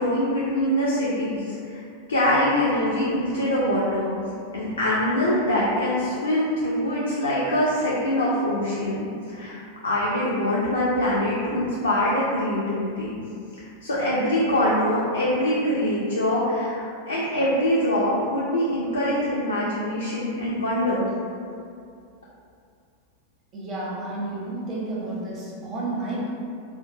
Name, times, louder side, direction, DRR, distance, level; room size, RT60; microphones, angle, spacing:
voice 1, 0.0-1.8 2.1-4.1 4.5-13.1 13.8-21.1, left 1 dB, 75° left, -7 dB, 0.4 m, -24 dB
voice 2, 23.5-26.3, right 2 dB, 30° right, -5 dB, 0.6 m, -31 dB
2.7 x 2.0 x 2.5 m, 2.4 s
figure-of-eight pair, 90°, 0 cm